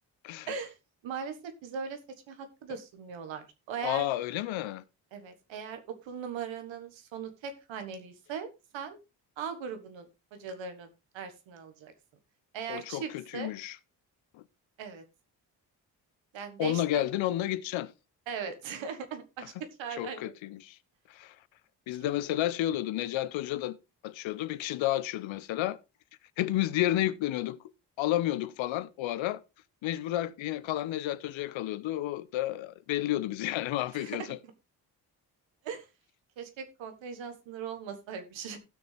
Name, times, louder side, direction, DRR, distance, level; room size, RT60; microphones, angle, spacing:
voice 1, 1.0-2.0 2.3-4.1 5.1-9.0 9.4-10.9 11.1-11.9 12.5-13.5 14.8-15.0 16.3-17.0 18.3-20.3 22.0-22.1 33.9-34.3 35.6-35.9 36.4-38.6, right 6 dB, 85° right, 1.6 m, -39 dB
voice 2, 3.8-4.8 12.7-13.8 14.3-14.4 16.6-17.9 20.0-20.8 21.1-21.3 21.9-23.8 24.0-25.8 26.4-27.6 28.0-29.4 29.8-34.4, left 14 dB, 85° left, 0.7 m, -31 dB
16.0 x 6.3 x 3.3 m
supercardioid pair, 50°, 45 cm